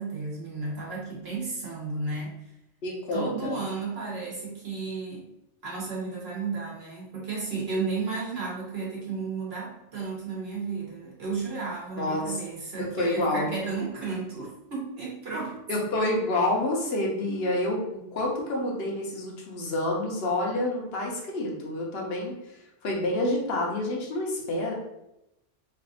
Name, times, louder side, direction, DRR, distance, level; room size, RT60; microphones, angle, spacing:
voice 1, 0.0-2.3 3.1-5.3 5.6-15.6, right 4 dB, 55° right, -4 dB, 1.3 m, -33 dB
voice 2, 2.8-3.6 12.0-12.4 12.8-13.5 15.7-24.7, left 1 dB, 60° left, -2 dB, 1.0 m, -28 dB
3.3 x 2.5 x 3.8 m, 0.86 s
omnidirectional pair, 1.2 m